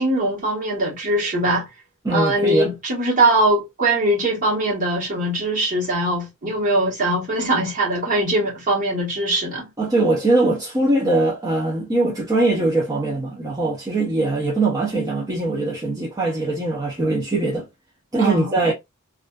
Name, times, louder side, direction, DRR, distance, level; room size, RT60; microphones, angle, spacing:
voice 1, 0.0-1.7 2.1-9.6 18.2-18.6, right 1 dB, 35° right, 1.1 m, -21 dB
voice 2, 2.0-2.7 9.8-17.7 18.1-18.7, right 2 dB, 15° right, 0.5 m, -21 dB
2.4 x 2.3 x 2.2 m
head